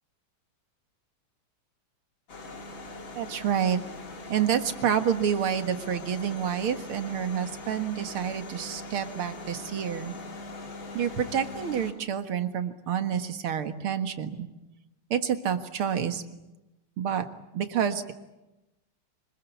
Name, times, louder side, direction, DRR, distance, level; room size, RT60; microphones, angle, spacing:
sound 1, 2.3-11.9, left 2 dB, 65° left, 3.6 m, -41 dB
voice 1, 3.2-3.8 4.3-10.1 10.9-14.5 15.1-16.2 17.0-17.3 17.5-18.1, right 8 dB, 80° right, 8 dB, 2.5 m, -28 dB
25.5 x 21.0 x 9.5 m, 0.99 s
omnidirectional pair, 2.3 m